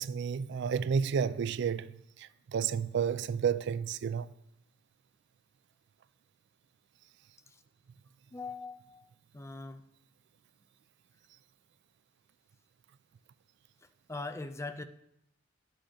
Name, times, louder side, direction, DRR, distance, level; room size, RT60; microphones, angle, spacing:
voice 1, 0.0-4.3, right 7 dB, 60° right, 0.3 m, -31 dB
voice 2, 8.3-9.8 14.1-14.8, left 3 dB, 15° left, 0.4 m, -41 dB
10.0 x 6.3 x 4.9 m
head